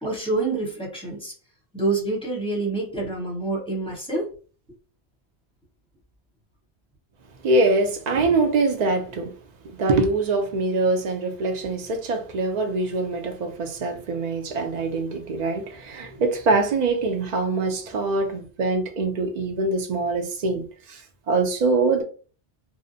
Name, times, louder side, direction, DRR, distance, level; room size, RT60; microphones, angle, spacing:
voice 1, 0.0-1.3 1.7-4.3, right 2 dB, 5° left, 0.8 m, -27 dB
voice 2, 7.4-9.3 9.7-22.0, right 3 dB, 55° right, 0.5 m, -24 dB
2.5 x 2.1 x 2.6 m
omnidirectional pair, 1.1 m